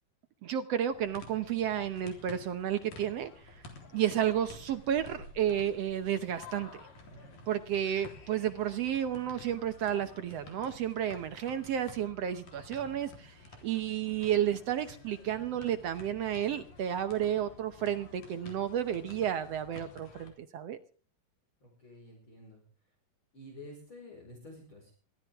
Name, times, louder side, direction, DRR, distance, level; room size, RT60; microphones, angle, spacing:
voice 1, 0.4-3.6 3.9-6.9 7.5-20.8, right 10 dB, 70° right, 10 dB, 1.5 m, -32 dB
sound 1, 0.9-20.3, left 3 dB, 75° left, 5.2 m, -52 dB
voice 2, 21.6-22.6 23.3-24.9, left 1 dB, 35° left, 0 dB, 5.5 m, -50 dB
22.0 x 16.5 x 3.6 m, 0.40 s
omnidirectional pair, 3.9 m